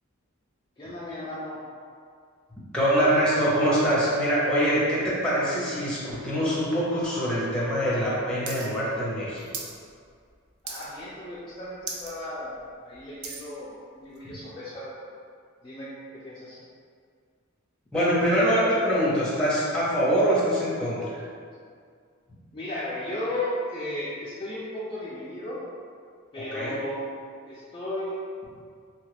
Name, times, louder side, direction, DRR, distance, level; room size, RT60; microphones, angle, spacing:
voice 1, 0.8-1.6 10.6-14.9 15.6-15.9 16.2-16.6 22.5-25.6 26.3-27.2 27.5-28.1, left 1 dB, 25° left, -10 dB, 0.4 m, -35 dB
voice 2, 2.7-9.5 17.9-21.2 26.5-26.7, equal, 5° left, -9 dB, 0.7 m, -24 dB
sound 1, 8.5-8.7 8.9-9.8 10.1-10.3 10.7-11.1 11.5-11.6 11.8-12.1 12.6-13.5 14.2-14.3, right 4 dB, 80° right, 0.4 m, -37 dB
2.9 x 2.4 x 3.3 m, 2.1 s
head